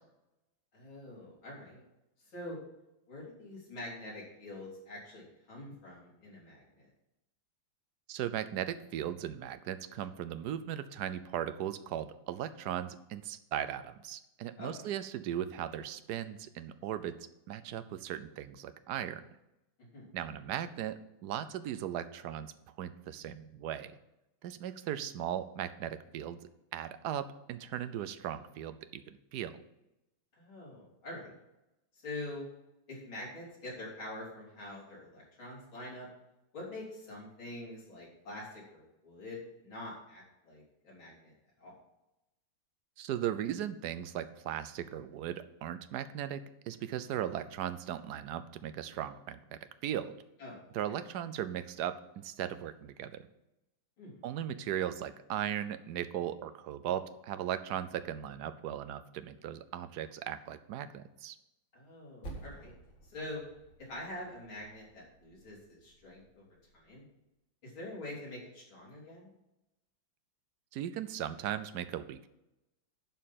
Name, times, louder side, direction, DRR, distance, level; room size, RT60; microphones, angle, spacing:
voice 1, 0.7-1.8 2.3-2.6 3.1-6.8 14.6-14.7 19.9-20.0 30.4-31.4 31.9-32.5 32.9-36.1 36.5-41.3 41.6-41.7 50.4-50.6 54.0-54.2 61.7-62.7 63.1-63.4 63.8-66.4 66.7-67.0 67.6-69.3, left 1 dB, 90° left, -5 dB, 4.4 m, -45 dB
voice 2, 8.1-17.1 17.5-19.2 20.1-23.9 24.4-26.4 26.7-29.5 43.0-50.1 50.7-53.3 54.2-61.4 70.7-72.3, right 10 dB, 70° right, 12 dB, 1.1 m, -38 dB
Percussion, 62.2-67.1, right 2 dB, 70° left, 2.7 m, -52 dB
11.0 x 4.5 x 7.3 m, 0.91 s
omnidirectional pair, 2.1 m